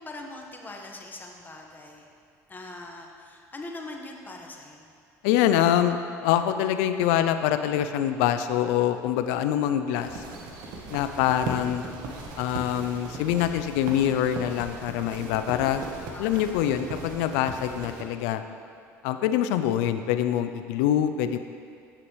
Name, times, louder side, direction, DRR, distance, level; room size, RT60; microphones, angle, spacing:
voice 1, 0.0-2.1 2.5-4.9 16.1-16.4, left 2 dB, 25° left, 1 dB, 1.5 m, -42 dB
voice 2, 5.2-10.2 10.9-11.8 12.4-15.8 16.2-18.4 19.0-21.4, left 10 dB, 75° left, 9 dB, 0.5 m, -25 dB
sound 1, 10.0-18.0, right 3 dB, 65° right, 1.3 m, -38 dB
15.0 x 5.8 x 3.2 m, 2.3 s
hypercardioid pair, 70°, 8 cm